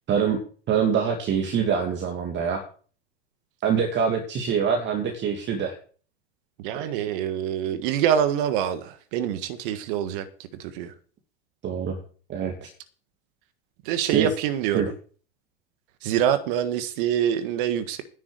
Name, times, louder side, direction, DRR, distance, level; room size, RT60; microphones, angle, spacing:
voice 1, 0.1-0.4 0.7-2.6 3.6-5.7 11.6-12.0 12.3-12.7 14.0-14.3 14.7-14.9, right 7 dB, 35° right, 2.5 m, -24 dB
voice 2, 6.6-10.2 10.6-10.9 13.8-14.9 16.0-18.0, right 9 dB, 55° right, 1.5 m, -25 dB
10.5 x 7.5 x 8.0 m
hypercardioid pair, 85°, 31 cm